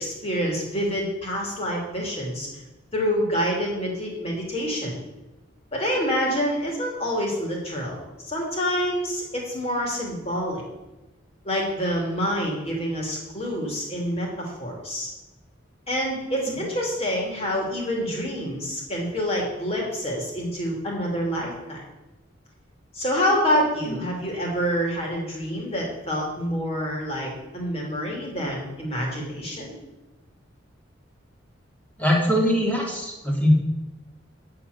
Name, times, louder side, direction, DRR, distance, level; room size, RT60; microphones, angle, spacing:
voice 1, 0.0-2.5 2.9-5.0 5.7-10.6 11.4-15.1 15.9-21.8 22.9-29.7, equal, 35° left, -2 dB, 2.7 m, -27 dB
voice 2, 32.0-33.5, equal, 10° left, -2 dB, 2.2 m, -22 dB
9.5 x 5.8 x 6.7 m, 1.0 s
head